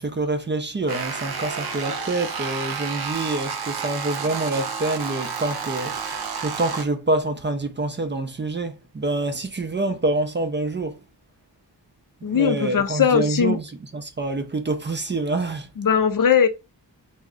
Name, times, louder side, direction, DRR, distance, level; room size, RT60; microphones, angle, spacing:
voice 1, 0.0-11.0 12.2-15.7, right 2 dB, 25° right, 0.5 m, -26 dB
sound 1, 0.9-6.8, right 6 dB, 60° right, 0.7 m, -30 dB
voice 2, 12.2-13.6 15.8-16.5, left 7 dB, 50° left, 0.5 m, -19 dB
2.3 x 2.1 x 3.6 m
cardioid pair, 45°, 43 cm